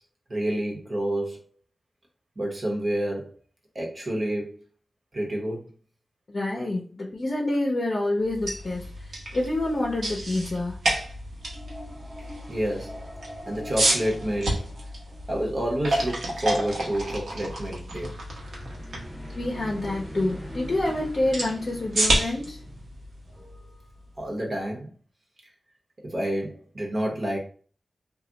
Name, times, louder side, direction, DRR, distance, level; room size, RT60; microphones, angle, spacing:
voice 1, 0.3-1.4 2.4-3.3 3.7-4.6 5.1-5.7 12.5-13.0 13.5-14.7 15.3-18.1 23.3-23.8 24.2-24.9 26.0-27.4, right 1 dB, 40° right, 0.9 m, -29 dB
voice 2, 6.3-10.8 19.3-22.6, left 2 dB, 45° left, 0.6 m, -27 dB
sound 1, 8.2-24.2, right 1 dB, 85° right, 0.9 m, -31 dB
sound 2, 11.4-15.7 18.3-23.3, equal, 5° right, 0.7 m, -43 dB
2.3 x 2.1 x 3.8 m
wide cardioid pair, 120°, 0 cm